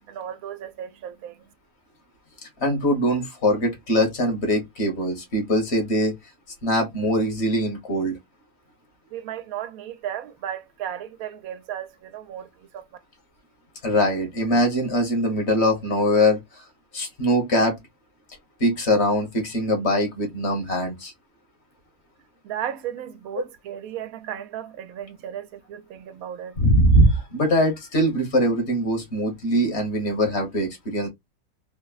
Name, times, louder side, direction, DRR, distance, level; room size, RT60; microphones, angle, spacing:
voice 1, 0.1-1.4 9.1-12.9 22.4-26.6, right 10 dB, 85° right, 1.0 m, -35 dB
voice 2, 2.6-6.1 6.6-8.2 13.8-16.6 16.9-17.8 18.6-21.1 23.3-23.4 26.6-31.1, equal, 50° left, 1.4 m, -22 dB
3.4 x 2.1 x 2.3 m
omnidirectional pair, 1.5 m